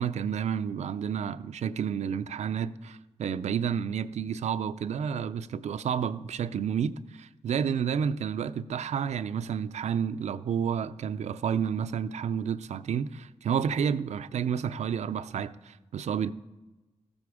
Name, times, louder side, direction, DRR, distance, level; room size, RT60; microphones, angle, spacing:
voice 1, 0.0-16.3, right 7 dB, 85° right, 0.4 m, -30 dB
14.5 x 8.7 x 4.9 m
wide cardioid pair, 90°, 11 cm